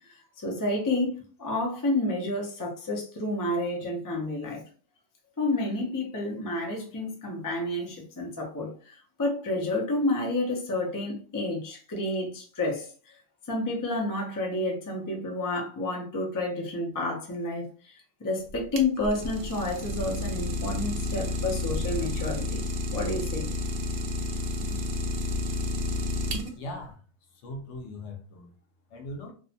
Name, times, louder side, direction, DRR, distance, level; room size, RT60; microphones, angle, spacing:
voice 1, 0.1-4.6 5.4-13.2 13.5-22.6 22.9-23.5, left 2 dB, 30° left, 0.4 m, -30 dB
Idling, 18.5-26.8, left 1 dB, 65° right, 0.6 m, -31 dB
voice 2, 26.6-27.0 27.3-28.5 28.9-29.3, left 1 dB, 70° left, 0.9 m, -40 dB
2.6 x 2.1 x 2.6 m
omnidirectional pair, 1.3 m